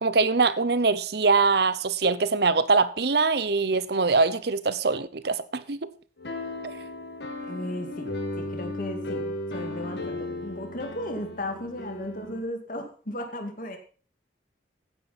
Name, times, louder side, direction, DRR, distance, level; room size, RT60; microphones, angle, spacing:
voice 1, 0.0-5.9, right 4 dB, 60° right, 0.8 m, -23 dB
sound 1, 6.2-12.4, left 2 dB, 65° left, 1.9 m, -35 dB
voice 2, 7.4-8.1 8.4-13.8, left 1 dB, 45° left, 2.3 m, -35 dB
15.0 x 9.4 x 4.3 m
head